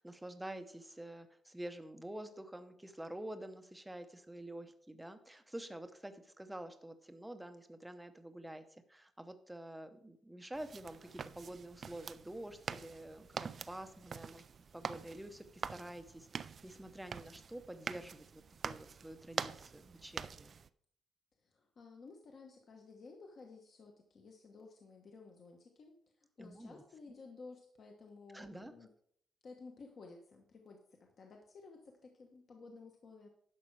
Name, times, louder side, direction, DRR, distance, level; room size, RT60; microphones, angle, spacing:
voice 1, 0.0-14.5 14.7-20.5 26.4-26.8 28.3-28.7, right 1 dB, 5° right, 8 dB, 0.7 m, -48 dB
sound 1, 10.5-20.7, right 6 dB, 35° right, 0.3 m, -45 dB
voice 2, 21.4-28.9 29.4-33.3, left 4 dB, 40° left, 2 dB, 1.1 m, -55 dB
11.0 x 6.2 x 4.8 m, 0.64 s
cardioid pair, 170°, 0 cm